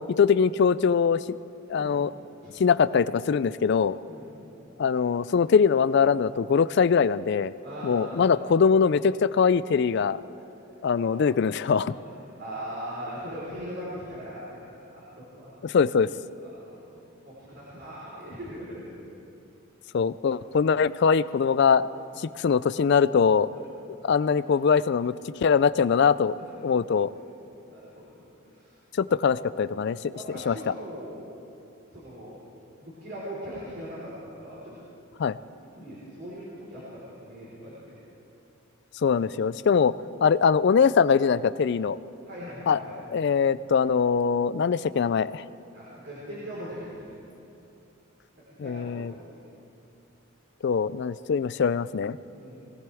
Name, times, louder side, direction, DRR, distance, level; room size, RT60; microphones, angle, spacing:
voice 1, 0.0-1.4 1.7-2.1 2.6-4.0 4.8-7.5 7.8-10.2 10.8-11.9 15.6-16.1 19.9-21.9 22.2-23.5 24.0-25.1 25.4-26.4 26.6-27.1 28.9-30.0 30.5-30.6 35.2-35.4 39.0-39.9 40.2-42.0 42.7-45.4 48.6-49.1 50.6-52.2, left 6 dB, 55° left, 16 dB, 0.3 m, -22 dB
voice 2, 1.7-2.0 2.4-2.6 4.1-4.5 7.6-8.3 11.0-11.2 11.9-12.1 12.4-15.5 16.4-16.7 17.2-18.8 26.4-26.6 27.7-28.8 30.1-31.2 31.9-32.4 32.8-34.8 35.8-37.9 42.2-43.0 45.7-47.1 48.3-49.1 49.5-49.6 52.3-52.6, equal, 50° right, -9 dB, 4.2 m, -40 dB
22.5 x 18.0 x 3.5 m, 2.7 s
head